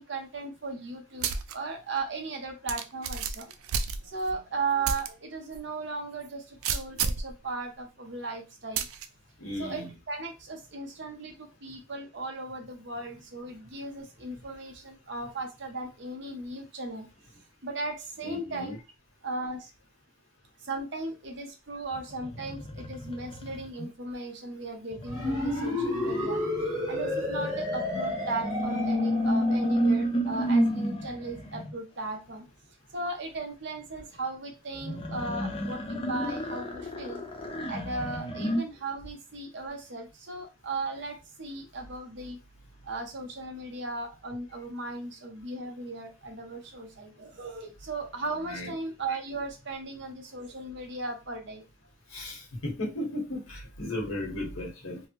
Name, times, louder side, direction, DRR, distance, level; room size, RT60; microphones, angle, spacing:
voice 1, 0.0-3.5 4.0-8.9 9.6-17.1 17.6-18.8 19.2-19.7 20.6-26.4 26.8-32.4 32.9-37.2 37.7-42.4 42.8-51.6, right 3 dB, 55° right, 4 dB, 0.8 m, -37 dB
sound 1, 1.2-1.5 2.0-2.1 2.7-4.4 4.8-5.1 5.5-5.6 6.6-7.3 8.8-9.1, right 6 dB, 80° right, 0.4 m, -30 dB
voice 2, 9.4-9.9 18.2-18.8 26.1-26.2 34.7-34.8 48.4-48.7 52.1-55.0, left 1 dB, 85° left, -1 dB, 1.2 m, -35 dB
sound 2, 21.9-23.9 24.9-31.7 34.8-38.6, equal, 25° left, 0.4 m, -31 dB
sound 3, 25.1-29.8, left 1 dB, 15° right, 1.1 m, -31 dB
3.3 x 2.1 x 2.9 m, 0.27 s
head